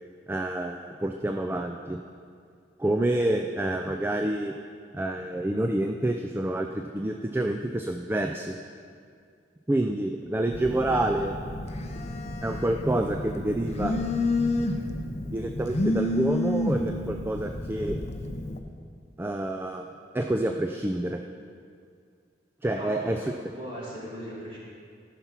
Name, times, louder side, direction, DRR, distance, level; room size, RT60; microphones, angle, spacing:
voice 1, 0.3-2.0 2.8-4.5 4.9-8.6 9.7-11.4 12.4-14.0 15.3-18.0 19.2-19.8 20.1-21.2 22.6-23.3, right 1 dB, 10° right, 3 dB, 0.3 m, -28 dB
Telephone, 10.5-18.6, left 2 dB, 35° left, 0.6 m, -30 dB
voice 2, 22.6-24.6, equal, 30° right, -6 dB, 2.6 m, -39 dB
13.0 x 5.9 x 5.7 m, 2.2 s
head